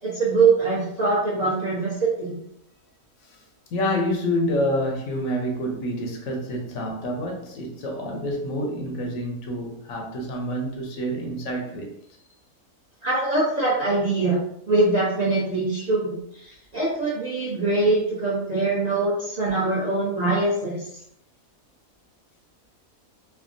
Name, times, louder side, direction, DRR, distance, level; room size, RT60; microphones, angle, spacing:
voice 1, 0.0-2.4 13.0-14.4 14.7-20.9, right 3 dB, 40° right, -7 dB, 0.6 m, -23 dB
voice 2, 3.7-11.9, equal, 75° left, 1 dB, 1.0 m, -28 dB
3.3 x 2.0 x 2.5 m, 0.74 s
omnidirectional pair, 1.5 m